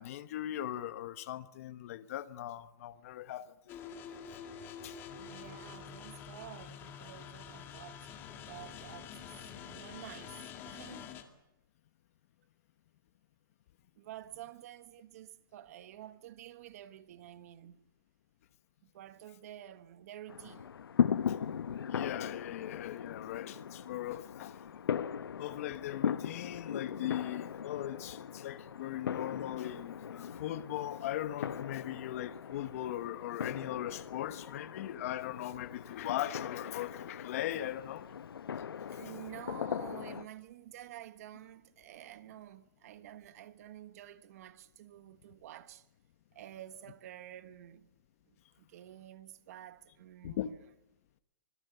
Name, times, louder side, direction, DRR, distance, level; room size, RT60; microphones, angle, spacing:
voice 1, 0.0-3.5 4.8-5.0 21.3-21.4 21.9-24.6 25.4-38.1 50.2-50.5, left 13 dB, 40° left, 1.2 m, -39 dB
sound 1, 3.7-11.2, left 8 dB, 20° left, 2.2 m, -47 dB
voice 2, 5.1-11.1 14.0-17.8 18.8-20.7 28.2-28.5 28.9-29.0 38.9-45.9 46.3-47.9 48.6-50.6, right 12 dB, 40° right, 1.4 m, -50 dB
sound 2, 20.3-40.3, left 8 dB, 80° left, 1.1 m, -38 dB
26.0 x 21.0 x 7.0 m
hypercardioid pair, 165°, 12 cm